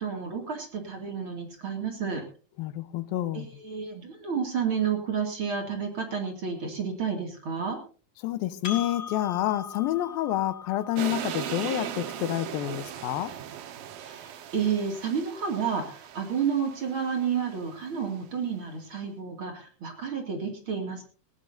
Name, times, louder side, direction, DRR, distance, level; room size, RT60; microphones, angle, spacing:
voice 1, 0.0-2.2 3.3-7.8 14.0-21.0, right 6 dB, 40° right, 2.7 m, -31 dB
voice 2, 2.6-3.5 8.2-13.3, left 13 dB, 80° left, 2.6 m, -28 dB
Percussion, 8.6-13.5, left 7 dB, 45° left, 3.8 m, -42 dB
sound 1, 11.0-18.1, right 10 dB, 75° right, 2.9 m, -39 dB
19.0 x 18.0 x 2.7 m
omnidirectional pair, 4.2 m